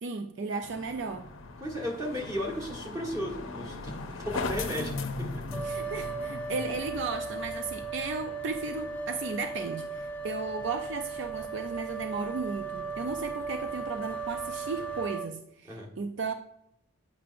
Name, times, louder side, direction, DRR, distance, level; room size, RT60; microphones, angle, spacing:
voice 1, 0.0-1.3 5.6-16.3, right 4 dB, 60° right, 0.4 m, -35 dB
sound 1, 0.6-15.1, left 3 dB, 75° left, 0.6 m, -41 dB
voice 2, 1.6-4.9 15.7-15.9, equal, 15° right, 1.4 m, -34 dB
sound 2, 5.5-15.3, right 4 dB, 5° left, 0.3 m, -37 dB
8.5 x 5.5 x 2.5 m
head